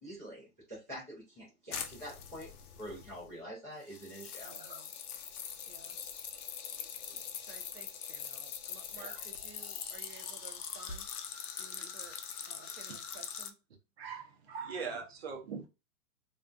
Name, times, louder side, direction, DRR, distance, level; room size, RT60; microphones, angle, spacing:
voice 1, 0.0-4.5, equal, 10° left, 0.5 m, -46 dB
sound 1, 1.7-3.3 3.9-13.5, left 7 dB, 75° left, 0.6 m, -43 dB
Zipper (clothing), 2.5-2.9 4.4-4.8 5.4-5.6 5.9-6.0 6.2-6.3 6.6-7.2 7.6-7.7 7.9-8.4 8.7-9.2 9.6-9.7 11.0-11.4, right 1 dB, 25° right, 1.2 m, -57 dB
voice 2, 4.4-4.9 5.7-6.0 7.4-11.1 11.5-12.2 12.5-13.5, right 5 dB, 80° right, 0.9 m, -54 dB
voice 3, 14.0-15.7, right 5 dB, 45° right, 0.6 m, -40 dB
2.4 x 2.3 x 2.3 m
hypercardioid pair, 175°, 46 cm